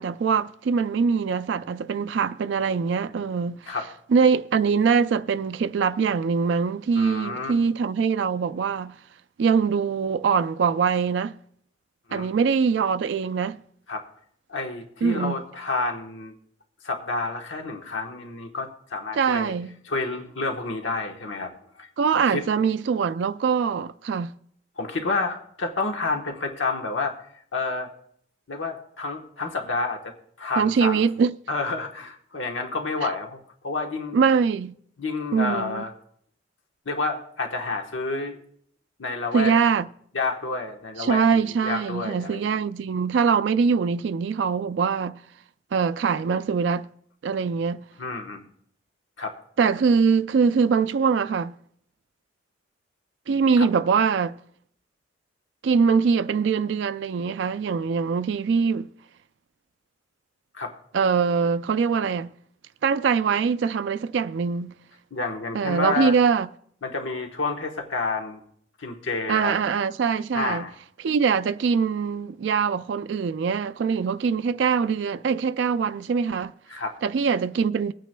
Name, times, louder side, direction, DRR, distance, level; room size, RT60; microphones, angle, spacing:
voice 1, 0.0-3.8 4.1-8.9 9.4-11.3 12.1-13.6 15.0-15.4 19.2-19.7 22.0-24.3 30.6-31.3 34.1-34.7 35.3-35.8 39.3-39.9 41.0-45.2 45.7-46.9 47.2-47.8 49.6-51.5 53.3-54.4 55.6-58.9 60.9-62.3 62.8-64.7 65.5-66.5 69.3-70.7 71.0-76.5 77.0-77.9, right 6 dB, 70° right, 0.3 m, -23 dB
voice 2, 7.0-7.5 12.1-12.3 13.9-14.0 14.5-16.3 16.8-19.5 19.8-21.5 21.8-22.4 24.8-27.2 27.5-27.9 28.5-31.0 31.5-33.4 33.6-34.2 35.0-35.9 36.9-38.4 39.0-39.5 40.1-42.6 48.0-48.4 49.2-49.3 53.6-53.7 60.5-60.7 65.1-66.1 66.8-68.4 68.8-69.6 70.3-70.7 76.7-76.9, left 3 dB, 90° left, 1.1 m, -29 dB
23.5 x 9.1 x 2.2 m
head